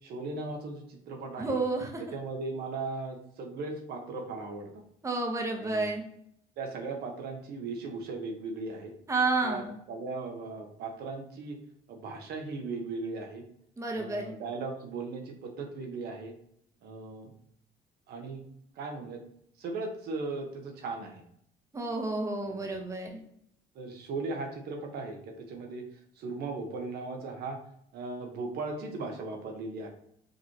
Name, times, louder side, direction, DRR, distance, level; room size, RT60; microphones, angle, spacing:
voice 1, 0.0-1.6 2.0-4.8 5.6-5.9 6.6-8.9 9.4-11.6 11.9-13.4 13.9-16.3 16.8-17.3 18.1-18.4 18.8-19.2 19.6-21.2 22.5-22.6 23.7-25.8 26.2-27.6 27.9-29.9, right 3 dB, 70° right, 3 dB, 1.0 m, -37 dB
voice 2, 1.4-2.0 5.0-6.0 9.1-9.7 13.8-14.3 21.7-23.2, right 3 dB, 20° right, 2 dB, 0.9 m, -30 dB
4.9 x 3.1 x 2.9 m, 0.70 s
cardioid pair, 110°, 17 cm